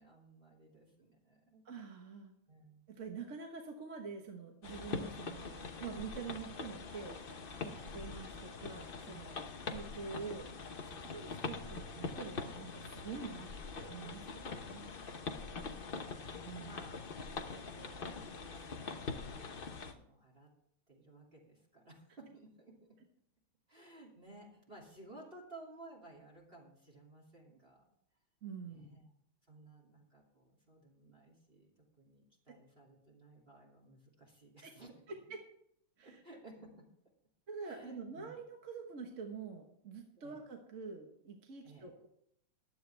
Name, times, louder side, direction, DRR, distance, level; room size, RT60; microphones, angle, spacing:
voice 1, 0.0-1.6 2.5-2.9 7.7-8.0 15.4-20.5 20.9-23.0 23.7-27.8 28.7-29.0 29.5-35.0 36.0-36.9 37.6-38.4 40.2-40.4 41.6-41.9, right 2 dB, 25° right, -2 dB, 2.8 m, -57 dB
voice 2, 1.6-2.3 2.9-7.2 7.6-9.4 9.7-10.5 10.9-14.9 16.4-16.7 28.4-29.1 34.6-34.7 35.3-35.4 36.0-36.1 37.5-42.1, right 5 dB, 40° right, 2 dB, 1.4 m, -46 dB
sound 1, 4.6-19.9, left 4 dB, 50° left, 0.6 m, -44 dB
15.0 x 11.0 x 3.4 m, 0.71 s
omnidirectional pair, 2.3 m